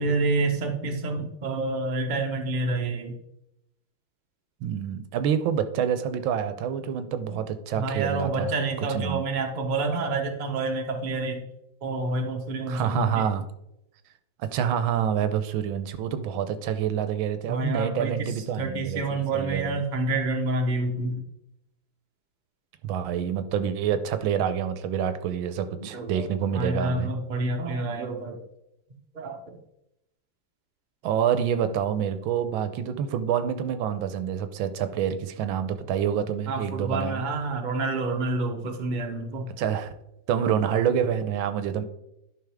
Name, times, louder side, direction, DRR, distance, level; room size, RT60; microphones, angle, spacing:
voice 1, 0.0-3.2 7.3-7.4 7.8-11.4 11.8-13.3 17.5-21.2 25.8-26.3 26.5-28.4 29.1-29.6 36.5-39.5, right 2 dB, 30° right, 2 dB, 0.9 m, -28 dB
voice 2, 4.6-8.5 8.9-9.2 12.7-13.4 14.4-19.8 22.8-27.1 31.0-37.2 39.6-39.9 40.3-41.8, right 8 dB, 90° right, 10 dB, 1.5 m, -27 dB
11.0 x 5.2 x 3.5 m, 0.83 s
omnidirectional pair, 2.2 m